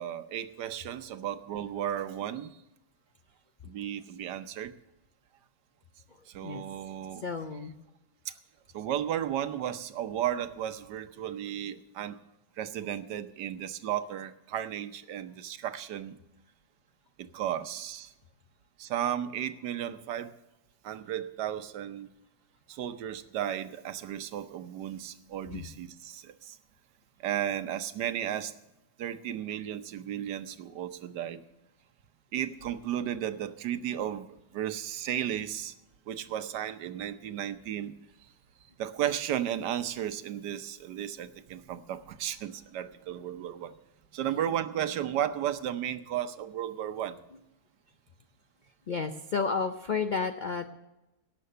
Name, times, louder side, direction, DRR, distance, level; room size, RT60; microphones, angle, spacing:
voice 1, 0.0-2.6 3.6-4.8 6.3-7.2 8.7-12.2 12.6-16.2 17.2-18.1 18.8-20.3 20.8-22.1 22.7-26.6 27.2-28.5 29.0-31.4 32.3-35.7 36.1-37.9 38.8-43.7 44.1-47.2, right 10 dB, 85° right, 11 dB, 1.4 m, -34 dB
voice 2, 7.2-7.7 25.5-25.7 48.9-50.6, left 5 dB, 80° left, 8 dB, 0.4 m, -31 dB
18.0 x 6.9 x 6.7 m, 0.95 s
omnidirectional pair, 1.8 m